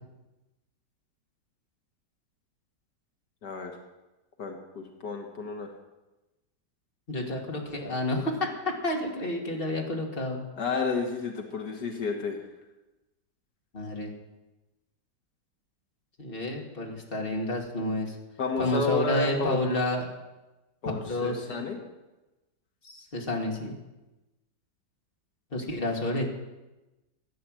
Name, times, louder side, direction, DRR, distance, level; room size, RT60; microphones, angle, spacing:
voice 1, 3.4-3.7 4.4-5.7 10.6-12.4 18.4-19.6 20.8-21.8, left 4 dB, 75° left, 3 dB, 2.0 m, -31 dB
voice 2, 7.1-8.3 8.6-10.4 13.7-14.1 16.2-18.1 18.6-20.0 20.9-21.7 22.8-23.7 25.5-26.3, left 1 dB, 30° left, 0 dB, 2.4 m, -30 dB
15.0 x 9.5 x 7.6 m, 1.1 s
omnidirectional pair, 1.8 m